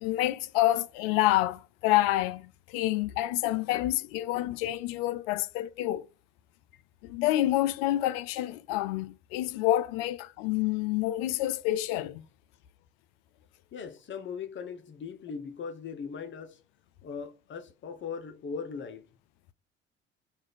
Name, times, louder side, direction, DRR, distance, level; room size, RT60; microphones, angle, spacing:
voice 1, 0.0-6.1 7.0-12.2, left 15 dB, 65° left, 0.4 m, -28 dB
voice 2, 13.7-16.6 17.0-19.1, left 6 dB, 35° left, 0.8 m, -39 dB
3.1 x 2.4 x 3.8 m
hypercardioid pair, 60°, 32 cm